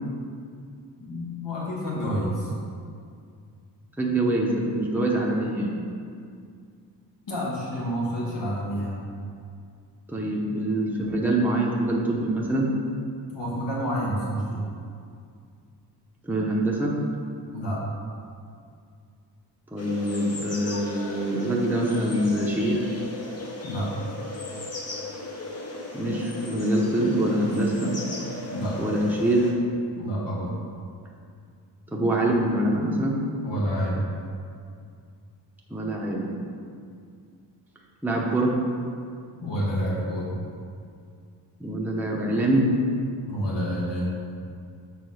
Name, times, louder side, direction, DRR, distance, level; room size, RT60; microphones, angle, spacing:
voice 1, 1.0-2.5 7.3-9.0 13.3-14.7 17.5-17.8 23.6-24.1 28.5-28.8 29.9-30.6 33.4-34.1 39.4-40.3 43.2-44.2, equal, 80° left, -6 dB, 1.7 m, -29 dB
voice 2, 4.0-5.7 10.1-12.7 16.2-16.9 19.7-22.8 25.9-27.9 28.8-29.5 31.9-33.2 35.7-36.3 38.0-38.5 41.6-42.7, right 1 dB, 5° right, -3 dB, 0.8 m, -24 dB
sound 1, 19.8-29.5, left 2 dB, 35° left, 1.0 m, -36 dB
6.8 x 3.8 x 6.3 m, 2.3 s
wide cardioid pair, 140°, 43 cm